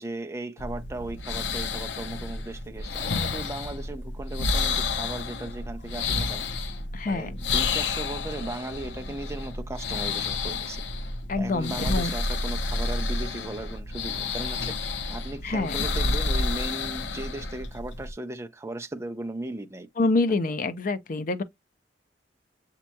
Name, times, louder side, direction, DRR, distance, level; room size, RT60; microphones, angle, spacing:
voice 1, 0.0-6.4 7.1-10.8 11.4-19.9, right 2 dB, 15° right, 0.6 m, -37 dB
sound 1, 0.6-18.1, left 3 dB, 85° left, 0.7 m, -30 dB
voice 2, 6.9-7.3 11.3-12.1 15.4-15.8 20.0-21.4, left 3 dB, 50° left, 0.6 m, -26 dB
7.3 x 2.9 x 2.2 m
head